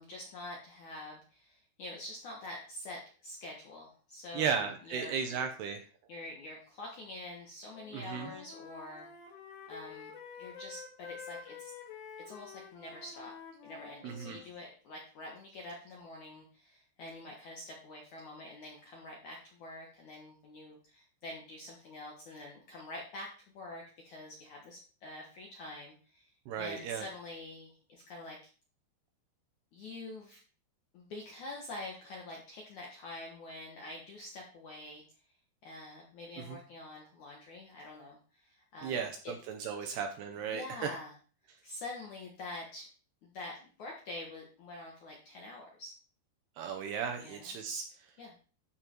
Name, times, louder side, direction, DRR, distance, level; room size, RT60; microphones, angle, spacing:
voice 1, 0.0-5.5 6.1-9.1 9.7-10.1 10.4-11.7 12.3-13.3 13.6-23.3 23.5-28.4 29.7-30.4 30.9-35.0 35.6-39.3 40.5-41.1 41.6-42.9 43.2-45.9 47.2-47.5 48.2-48.4, left 2 dB, 65° left, -1 dB, 1.9 m, -46 dB
voice 2, 4.3-5.8 7.9-8.3 14.0-14.4 26.5-27.1 36.4-36.6 38.8-40.9 46.6-47.9, right 6 dB, 75° right, 5 dB, 2.5 m, -35 dB
Wind instrument woodwind instrument, 7.7-14.5, left 6 dB, 85° left, 4.7 m, -49 dB
13.0 x 5.2 x 4.5 m, 0.40 s
omnidirectional pair, 5.5 m